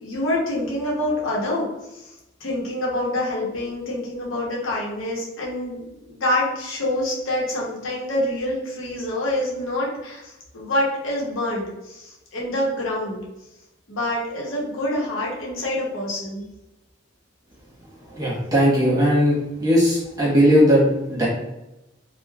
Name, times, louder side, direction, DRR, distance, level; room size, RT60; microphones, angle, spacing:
voice 1, 0.0-2.1 2.4-13.2 13.9-16.4, left 1 dB, 85° left, -4 dB, 0.8 m, -26 dB
voice 2, 18.0-21.3, equal, 20° right, -6 dB, 0.9 m, -18 dB
3.1 x 2.1 x 2.3 m, 0.94 s
head